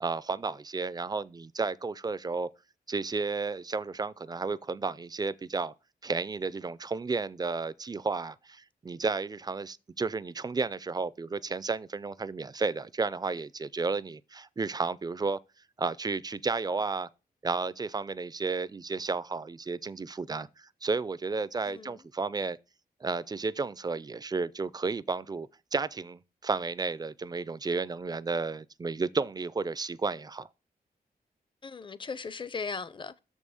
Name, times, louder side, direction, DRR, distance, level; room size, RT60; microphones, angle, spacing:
voice 1, 0.0-2.5 2.9-5.7 6.0-15.4 15.8-17.1 17.4-22.6 23.0-30.5, right 4 dB, 25° right, 0.3 m, -32 dB
voice 2, 21.6-22.1 31.6-33.2, left 5 dB, 30° left, 0.5 m, -38 dB
6.5 x 5.4 x 6.3 m
wide cardioid pair, 145°, 16 cm